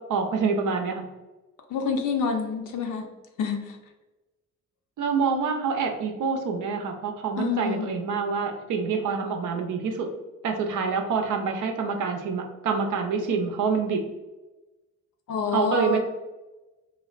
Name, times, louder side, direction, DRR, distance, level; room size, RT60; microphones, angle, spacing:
voice 1, 0.1-1.0 5.0-10.1 10.4-14.0 15.5-16.0, right 5 dB, 50° right, 3 dB, 0.6 m, -26 dB
voice 2, 1.7-3.0 3.4-3.8 7.4-7.9 15.3-16.0, left 5 dB, 50° left, 3 dB, 0.6 m, -27 dB
3.7 x 2.1 x 2.4 m, 1.1 s
hypercardioid pair, 45°, 39 cm